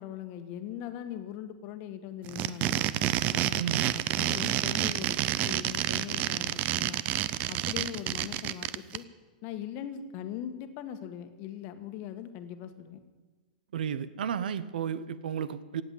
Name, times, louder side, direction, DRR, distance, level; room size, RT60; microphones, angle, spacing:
voice 1, 0.0-2.8 3.3-7.0 7.5-9.1 9.4-13.0, left 10 dB, 40° left, 8 dB, 1.4 m, -40 dB
sound 1, 2.2-9.0, right 14 dB, 30° right, 0.6 m, -29 dB
voice 2, 3.6-3.9 13.7-15.8, right 8 dB, 80° right, 15 dB, 0.9 m, -33 dB
17.5 x 7.9 x 9.1 m, 1.3 s
hypercardioid pair, 145°, 5 cm